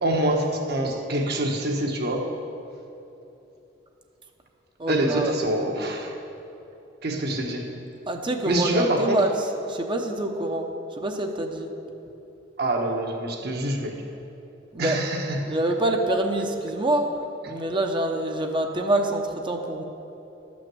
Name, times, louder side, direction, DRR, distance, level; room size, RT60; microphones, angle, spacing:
voice 1, 0.0-2.3 4.9-6.1 7.0-7.7 8.4-9.2 12.6-13.9 14.8-15.5, right 1 dB, 60° right, 2 dB, 1.4 m, -25 dB
voice 2, 4.8-5.3 8.1-9.3 9.7-10.7 11.0-11.7 14.7-15.0 15.4-19.8, right 1 dB, 25° right, 3 dB, 0.8 m, -26 dB
12.0 x 6.2 x 7.8 m, 3.0 s
head